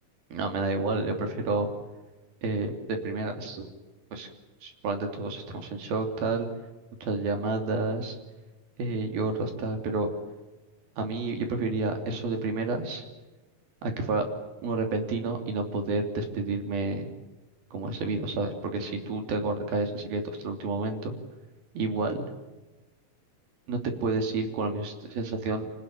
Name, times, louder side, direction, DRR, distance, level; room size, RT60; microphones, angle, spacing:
voice 1, 0.3-1.7 2.4-3.7 4.1-4.3 4.6-6.5 7.0-8.2 8.8-10.1 11.0-13.0 13.8-14.3 14.6-17.1 17.7-21.2 21.7-22.3 23.7-25.7, right 3 dB, 85° right, 5 dB, 5.0 m, -30 dB
27.5 x 19.5 x 9.1 m, 1.1 s
omnidirectional pair, 4.2 m